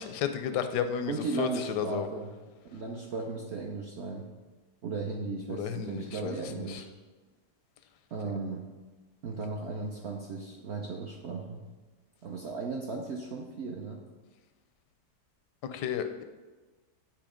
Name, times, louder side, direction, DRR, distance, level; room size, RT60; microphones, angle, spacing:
voice 1, 0.0-2.1 5.5-6.8 15.6-16.2, left 8 dB, 85° left, 9 dB, 1.2 m, -33 dB
voice 2, 1.1-2.3 2.6-4.3 4.8-6.9 8.1-8.6 9.2-11.6 12.2-14.0, right 4 dB, 70° right, 1 dB, 0.6 m, -36 dB
8.5 x 3.1 x 4.9 m, 1.3 s
omnidirectional pair, 1.7 m